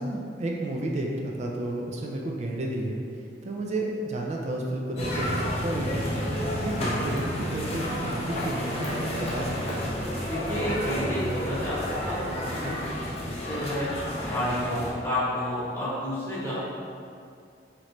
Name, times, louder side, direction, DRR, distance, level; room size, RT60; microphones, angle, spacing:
voice 1, 0.0-3.0 3.4-6.2 6.6-9.9, right 1 dB, 40° right, 0 dB, 0.3 m, -31 dB
sound 1, 5.0-14.9, equal, 35° left, 0.6 m, -31 dB
voice 2, 10.2-13.9 14.1-16.5, left 1 dB, 15° left, -10 dB, 1.1 m, -31 dB
3.1 x 3.0 x 3.8 m, 2.4 s
head